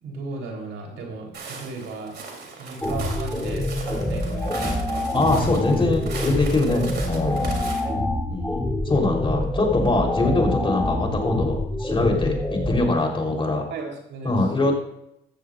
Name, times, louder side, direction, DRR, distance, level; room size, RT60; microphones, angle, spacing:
voice 1, 0.0-2.2 2.5-5.1 7.4-8.0 13.7-14.4, right 3 dB, 80° right, 0 dB, 3.8 m, -36 dB
Walk footsteps, 1.3-7.8, right 4 dB, 55° right, 3.4 m, -38 dB
sound 1, 2.8-12.8, left 1 dB, 10° left, 2.4 m, -26 dB
voice 2, 5.1-7.5 8.3-12.4 12.7-13.6 14.2-14.7, left 2 dB, 25° left, 0 dB, 3.8 m, -23 dB
14.5 x 14.5 x 2.6 m, 0.81 s
cardioid pair, 90°, 20 cm